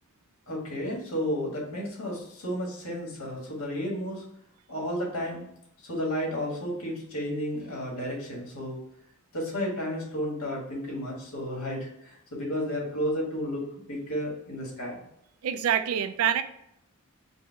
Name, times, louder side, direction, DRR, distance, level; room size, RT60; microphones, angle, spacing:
voice 1, 0.5-4.2 4.7-5.4 5.8-8.8 9.3-15.1, equal, 90° left, -1 dB, 1.4 m, -32 dB
voice 2, 15.4-16.4, right 9 dB, 80° right, 11 dB, 0.4 m, -25 dB
4.8 x 2.1 x 4.4 m, 0.75 s
head